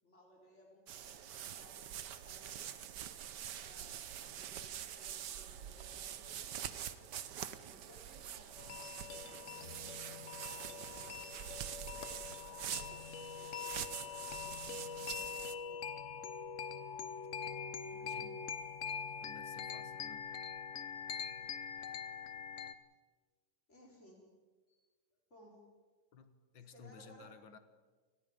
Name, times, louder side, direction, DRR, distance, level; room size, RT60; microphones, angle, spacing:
voice 1, 0.0-2.6 3.6-4.1 4.3-6.4 7.7-13.0 13.3-14.4 14.7-16.0 17.3-17.5 21.4-21.6 23.7-24.2 24.7-24.8 25.1-25.6 26.7-27.3, equal, 35° left, -2 dB, 5.2 m, -62 dB
sound 1, 0.9-15.6, right 10 dB, 65° right, 1.4 m, -45 dB
sound 2, 8.6-22.7, left 7 dB, 50° left, 1.0 m, -44 dB
voice 2, 17.9-18.5 19.2-20.2 26.1-27.6, left 5 dB, 75° left, 10 dB, 2.0 m, -56 dB
29.5 x 19.5 x 5.2 m, 1.4 s
omnidirectional pair, 2.1 m